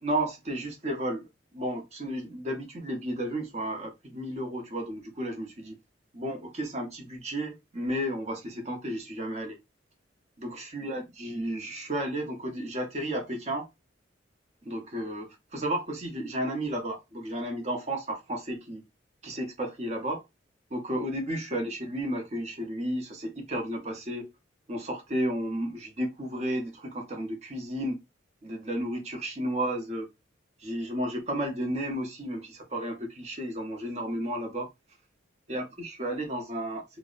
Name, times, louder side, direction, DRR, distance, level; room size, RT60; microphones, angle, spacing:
voice 1, 0.0-5.7 6.1-9.6 10.4-13.7 14.6-18.8 19.2-20.2 20.7-24.3 24.7-28.0 28.4-30.1 30.6-34.7 35.5-36.8, right 1 dB, 35° right, 0.7 m, -33 dB
2.6 x 2.0 x 2.4 m
head